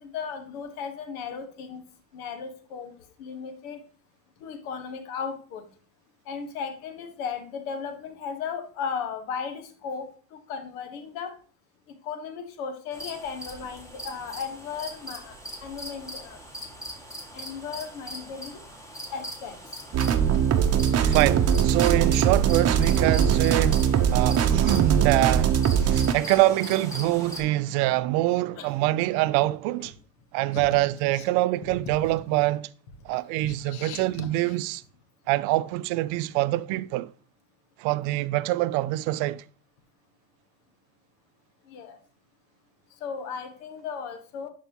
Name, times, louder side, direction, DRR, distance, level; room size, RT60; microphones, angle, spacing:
voice 1, 0.0-1.8 2.1-2.9 3.2-3.8 4.4-5.7 6.2-11.3 12.0-16.4 17.3-18.6 19.1-19.6 28.6-28.7 29.8-29.9 30.5-30.6 31.1-31.2 32.1-32.2 33.4-34.6 41.7-42.0 43.0-44.5, left 6 dB, 85° left, 1.6 m, -36 dB
sound 1, 12.9-27.4, equal, 5° left, 2.1 m, -40 dB
sound 2, 19.9-26.1, right 8 dB, 40° right, 0.9 m, -21 dB
voice 2, 21.1-29.9 30.3-32.7 33.0-34.8 35.3-37.1 37.8-39.4, right 17 dB, 70° right, 0.6 m, -25 dB
11.0 x 4.7 x 3.0 m
supercardioid pair, 85°, 41 cm